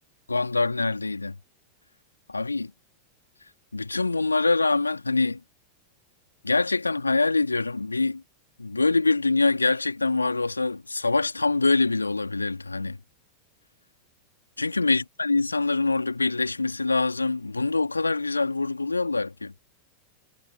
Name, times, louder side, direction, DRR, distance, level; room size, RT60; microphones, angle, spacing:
voice 1, 0.3-1.4 2.3-2.7 3.7-5.4 6.4-8.2 8.6-13.0 14.6-19.5, left 3 dB, 80° left, 2.7 m, -24 dB
figure-of-eight pair, 90°, 0 cm